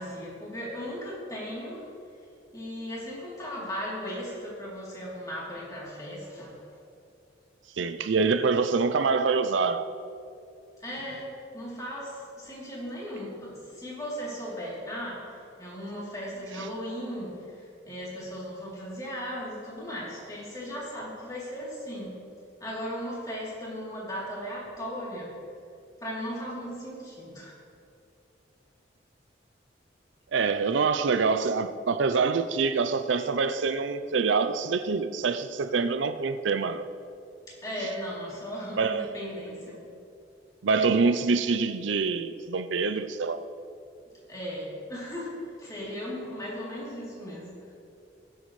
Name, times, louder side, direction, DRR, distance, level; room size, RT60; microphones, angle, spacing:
voice 1, 0.0-1.9 2.5-6.6 10.8-22.2 22.6-25.4 26.0-27.6 37.5-39.9 44.3-47.7, equal, 20° left, 3.2 m, -37 dB
voice 2, 7.8-9.9 30.3-36.8 38.8-39.2 40.6-43.5, right 4 dB, 85° right, 0.5 m, -25 dB
20.5 x 7.9 x 3.2 m
head